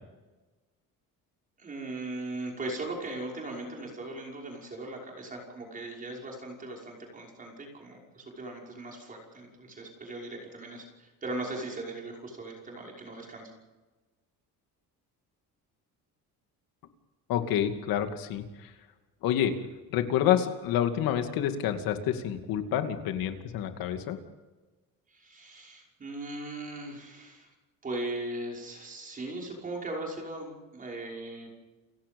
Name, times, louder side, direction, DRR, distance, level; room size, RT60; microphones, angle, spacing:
voice 1, 1.6-13.5 25.1-27.5 27.8-31.5, right 2 dB, 25° right, -1 dB, 5.8 m, -39 dB
voice 2, 17.3-18.7 19.2-19.6 19.9-24.2, left 10 dB, 90° left, 7 dB, 2.6 m, -28 dB
29.5 x 16.5 x 5.5 m, 1.2 s
cardioid pair, 175°, 34 cm